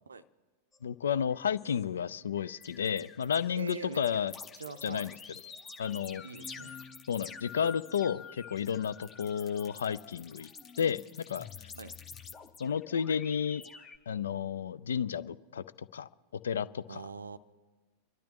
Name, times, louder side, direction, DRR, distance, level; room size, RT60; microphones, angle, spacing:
sound 1, 0.7-0.8 1.3-1.8 2.4-14.0, left 6 dB, 25° left, 0.8 m, -48 dB
voice 1, 0.8-4.3 4.8-5.1 5.8-6.2 7.1-10.5 10.8-11.0 11.3-11.5 12.6-13.6 14.1-16.1 16.4-17.0, left 8 dB, 65° left, 18 dB, 0.3 m, -32 dB
voice 2, 3.6-4.0 4.6-5.1 6.2-6.8 11.7-11.9 16.9-17.4, right 5 dB, 75° right, 13 dB, 0.5 m, -43 dB
29.0 x 12.0 x 3.0 m, 1.3 s
figure-of-eight pair, 90°, 0 cm